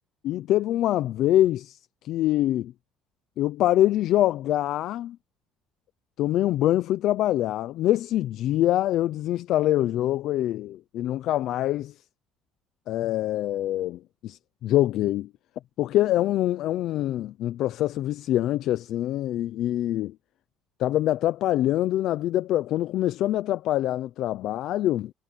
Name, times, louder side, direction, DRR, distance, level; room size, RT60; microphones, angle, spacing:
voice 1, 0.2-1.8 2.0-2.7 3.4-5.2 6.2-11.9 12.9-15.3 15.8-20.1 20.8-25.1, left 13 dB, 60° left, 0.6 m, -24 dB
cardioid pair, 140°, 0 cm